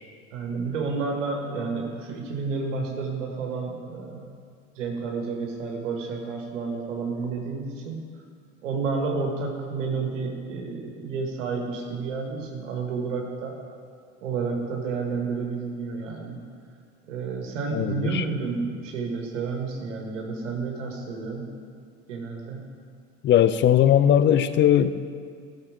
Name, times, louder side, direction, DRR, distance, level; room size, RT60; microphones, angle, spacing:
voice 1, 0.3-4.4 4.8-8.1 8.6-13.6 14.2-16.4 17.1-21.4 22.1-22.6, right 4 dB, 80° right, 1 dB, 1.7 m, -30 dB
voice 2, 17.7-18.2 23.2-25.0, left 10 dB, 30° left, 13 dB, 0.5 m, -19 dB
13.5 x 6.5 x 4.9 m, 2.2 s
hypercardioid pair, 75°, 37 cm